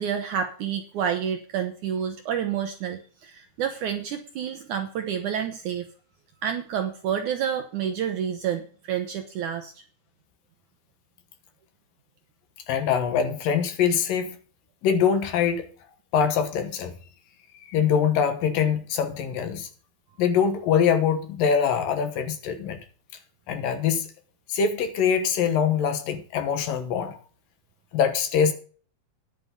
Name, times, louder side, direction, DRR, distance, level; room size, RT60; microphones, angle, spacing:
voice 1, 0.0-5.9 6.4-9.7, right 8 dB, 70° right, 1.9 m, -29 dB
voice 2, 12.7-14.4 14.8-15.7 16.1-16.9 17.6-19.7 20.2-22.8 23.5-24.1 24.5-27.2 27.9-28.5, left 7 dB, 65° left, 2.7 m, -23 dB
10.5 x 9.5 x 5.3 m
omnidirectional pair, 4.6 m